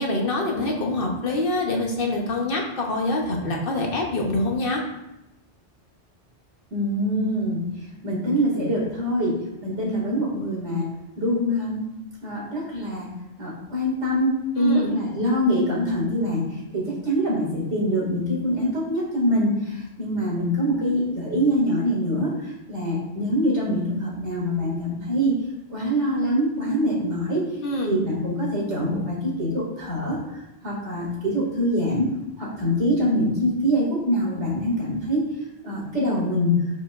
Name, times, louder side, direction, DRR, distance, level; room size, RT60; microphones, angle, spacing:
voice 1, 0.0-4.8 14.6-14.9 27.6-28.0, left 2 dB, 55° left, 0 dB, 1.2 m, -25 dB
voice 2, 6.7-7.7 8.0-11.9 12.2-13.1 13.4-25.4 25.7-27.4 27.9-35.3 35.6-36.6, equal, 90° right, -4 dB, 2.6 m, -24 dB
9.1 x 5.0 x 2.5 m, 0.89 s
omnidirectional pair, 1.1 m